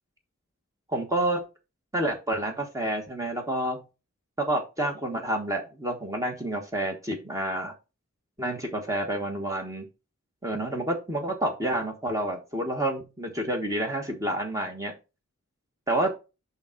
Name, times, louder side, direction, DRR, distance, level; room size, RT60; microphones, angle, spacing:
voice 1, 0.9-1.4 1.9-3.8 4.4-7.7 8.4-9.8 10.4-14.9 15.9-16.1, right 1 dB, 15° right, 3 dB, 1.3 m, -29 dB
6.9 x 5.5 x 3.8 m, 0.28 s
head